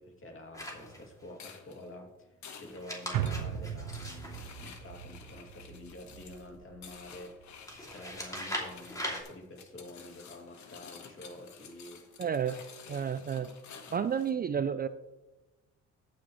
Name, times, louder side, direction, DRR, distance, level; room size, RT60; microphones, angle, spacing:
voice 1, 0.0-7.5 7.8-12.0 12.9-13.1 13.9-14.1, left 1 dB, 45° left, 1 dB, 2.6 m, -49 dB
sound 1, 0.5-1.3 2.7-5.2 7.6-9.2, equal, 10° left, 2.7 m, -41 dB
sound 2, 1.3-14.3, left 7 dB, 70° left, 1.3 m, -52 dB
sound 3, 3.1-7.6 7.9-8.0, right 9 dB, 90° right, 0.6 m, -38 dB
voice 2, 12.2-12.6 12.9-13.5 13.9-14.9, right 7 dB, 30° right, 12 dB, 0.4 m, -31 dB
17.0 x 6.3 x 3.1 m, 1.1 s
cardioid pair, 90°, 30 cm